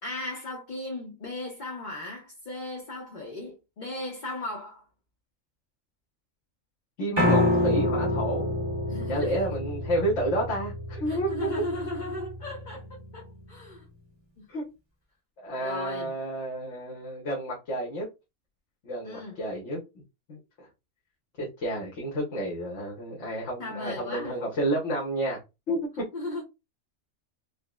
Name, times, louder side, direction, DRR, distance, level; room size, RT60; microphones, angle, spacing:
voice 1, 0.0-4.8 8.9-9.5 11.1-13.9 14.4-14.5 15.5-16.2 19.0-19.4 23.6-24.4 26.1-26.4, left 2 dB, 45° left, 0.8 m, -36 dB
voice 2, 7.0-8.5 9.1-11.5 14.5-14.6 15.4-18.1 18.8-19.8 20.3-20.7 21.4-25.4 25.7-26.0, right 1 dB, 65° left, 1.4 m, -30 dB
Piano, 7.2-13.3, left 1 dB, 25° right, 0.8 m, -28 dB
5.2 x 2.0 x 2.3 m
omnidirectional pair, 1.3 m